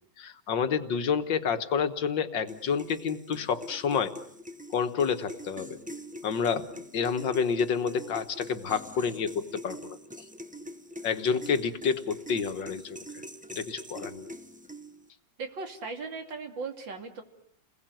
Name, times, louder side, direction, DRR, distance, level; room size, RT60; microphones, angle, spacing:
voice 1, 0.2-4.1 4.7-5.8 6.2-6.7 6.9-10.0 11.0-13.0 13.5-14.3, left 6 dB, 80° left, 9 dB, 2.1 m, -29 dB
sound 1, 2.5-15.1, equal, 5° right, 0.6 m, -44 dB
voice 2, 15.4-17.2, right 4 dB, 80° right, 5 dB, 3.5 m, -37 dB
30.0 x 21.0 x 9.2 m, 0.68 s
omnidirectional pair, 2.0 m